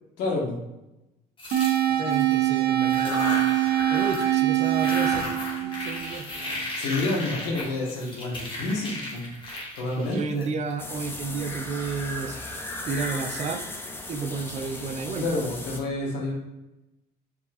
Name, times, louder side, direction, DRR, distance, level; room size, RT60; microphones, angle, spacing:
voice 1, 0.2-0.6 6.8-9.3 9.8-10.5 14.5-16.3, left 2 dB, 90° left, -1 dB, 1.3 m, -29 dB
sound 1, 1.4-2.4 2.8-4.4 4.6-11.0, left 2 dB, 30° left, 1.4 m, -35 dB
sound 2, 1.5-6.5, right 12 dB, 75° right, 0.8 m, -24 dB
voice 2, 1.9-3.5 3.9-6.3 10.0-12.4 12.9-13.7 14.1-15.5, right 4 dB, 40° right, 9 dB, 0.5 m, -32 dB
sound 3, 10.8-15.8, left 1 dB, 15° left, 0.6 m, -36 dB
4.8 x 4.2 x 2.4 m, 0.95 s
cardioid pair, 110°, 17 cm